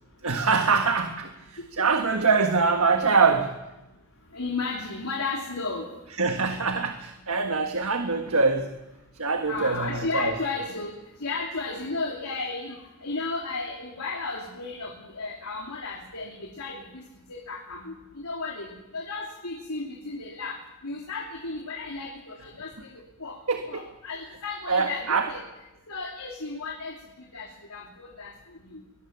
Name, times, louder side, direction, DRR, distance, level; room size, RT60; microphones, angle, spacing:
voice 1, 0.2-3.6 6.2-8.7 9.2-10.3 23.5-23.8 24.7-25.3, right 4 dB, 75° right, 6 dB, 1.5 m, -24 dB
voice 2, 4.3-5.9 9.5-17.0 17.3-20.6 20.8-23.4 23.7-25.4 25.9-28.8, left 3 dB, 85° left, -1 dB, 3.2 m, -34 dB
23.0 x 18.0 x 7.4 m, 0.99 s
head